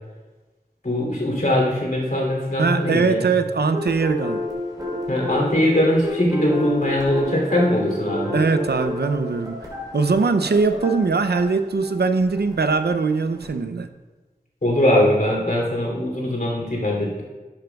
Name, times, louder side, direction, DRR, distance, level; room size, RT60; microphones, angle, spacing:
voice 1, 0.8-3.3 5.1-8.4 14.6-17.2, left 1 dB, 60° left, -2 dB, 3.0 m, -21 dB
voice 2, 2.6-4.4 8.3-13.9, right 4 dB, 85° right, 9 dB, 0.5 m, -21 dB
sound 1, 3.7-13.5, left 1 dB, 25° right, 3.2 m, -31 dB
11.5 x 10.5 x 2.3 m, 1.2 s
wide cardioid pair, 50°, 16 cm